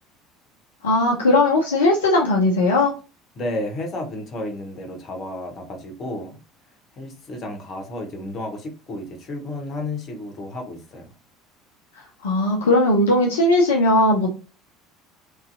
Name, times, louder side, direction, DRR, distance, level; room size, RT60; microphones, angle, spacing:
voice 1, 0.8-2.9 12.2-14.4, left 2 dB, 70° left, 0.5 m, -18 dB
voice 2, 3.4-6.4 7.0-11.1, left 1 dB, 40° left, 0.9 m, -32 dB
3.0 x 2.7 x 2.4 m
figure-of-eight pair, 65°, 0 cm